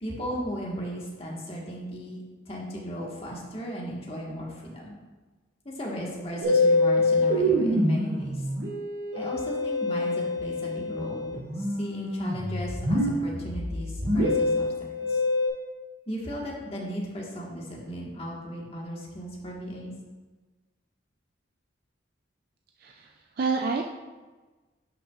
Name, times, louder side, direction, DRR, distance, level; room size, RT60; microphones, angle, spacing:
voice 1, 0.0-4.9 5.6-8.4 9.1-14.7 15.1-15.2 16.1-19.9, equal, 30° left, -3 dB, 1.6 m, -36 dB
Musical instrument, 6.4-15.5, left 1 dB, 80° right, 2.4 m, -26 dB
voice 2, 22.8-23.9, right 4 dB, 50° right, 2 dB, 0.4 m, -29 dB
10.5 x 5.9 x 2.5 m, 1.3 s
head